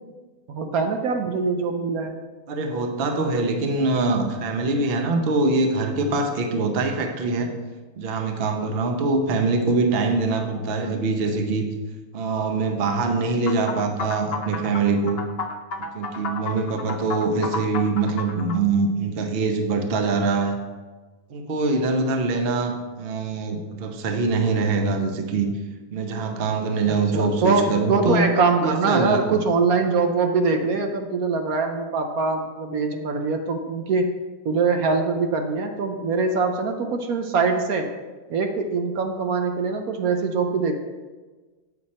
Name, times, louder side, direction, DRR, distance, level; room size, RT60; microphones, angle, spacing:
voice 1, 0.5-2.1 26.8-34.0 34.4-37.8 38.3-40.8, right 4 dB, 65° right, 4 dB, 1.1 m, -23 dB
voice 2, 2.5-7.5 8.0-11.7 12.1-15.2 15.9-20.6 21.3-25.5 25.9-28.3 28.6-29.2, right 3 dB, 45° right, 5 dB, 0.9 m, -23 dB
sound 1, 13.5-18.6, left 4 dB, 55° left, 0.7 m, -32 dB
8.8 x 6.5 x 4.2 m, 1.3 s
omnidirectional pair, 1.7 m